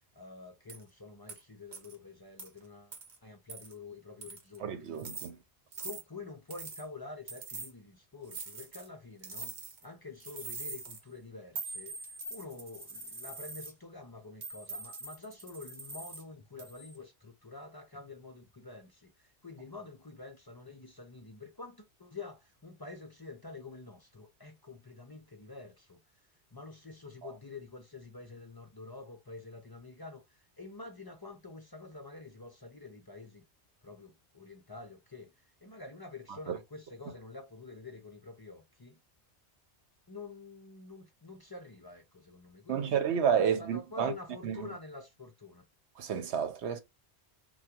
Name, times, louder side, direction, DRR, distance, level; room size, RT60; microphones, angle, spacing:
voice 1, 0.1-3.0 3.2-5.0 5.8-9.5 9.8-33.4 33.8-39.0 40.1-43.0 43.4-45.7, left 3 dB, 30° left, 0.4 m, -48 dB
sound 1, 0.7-0.8 1.3-1.4 1.7-1.9 2.4-2.5 2.9-3.2 3.5-3.7 4.2-4.6 5.0-5.3 5.7-6.0 6.5-6.8 7.3-7.7 8.3-8.9 9.2-9.8 10.2-11.0 11.5-13.7 14.4-16.2 16.6-16.9, right 3 dB, 45° right, 1.0 m, -43 dB
voice 2, 4.6-5.4 27.2-27.3 36.5-36.6 42.7-44.1 44.4-44.7 46.0-46.8, right 8 dB, 75° right, 1.0 m, -30 dB
3.5 x 2.3 x 2.7 m
omnidirectional pair, 1.1 m